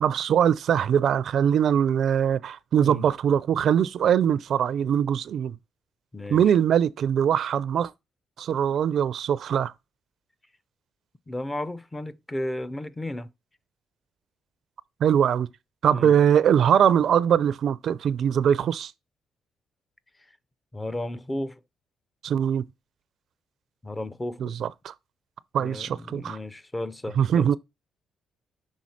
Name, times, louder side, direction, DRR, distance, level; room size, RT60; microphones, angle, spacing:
voice 1, 0.0-5.6 6.3-7.9 8.4-9.7 15.0-15.5 15.8-18.9 22.2-22.6 24.4-24.9 25.5-26.4 27.2-27.6, right 9 dB, 65° right, 0.4 m, -22 dB
voice 2, 6.1-6.5 11.3-13.3 15.9-16.1 20.7-21.6 23.8-24.6 25.6-27.6, left 1 dB, 15° left, 0.6 m, -34 dB
6.3 x 3.8 x 4.2 m
cardioid pair, 90°, 0 cm